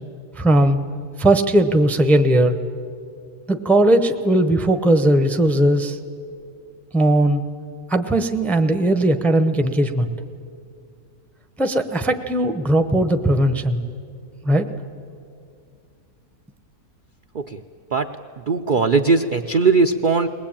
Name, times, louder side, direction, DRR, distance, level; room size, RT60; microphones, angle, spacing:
voice 1, 0.4-0.8 1.2-2.6 3.5-6.0 6.9-7.4 7.9-10.1 11.6-13.8 14.4-14.7, right 1 dB, ahead, 7 dB, 0.6 m, -18 dB
voice 2, 18.5-20.3, right 4 dB, 55° right, 6 dB, 0.5 m, -19 dB
21.5 x 20.0 x 8.8 m, 2.3 s
omnidirectional pair, 1.6 m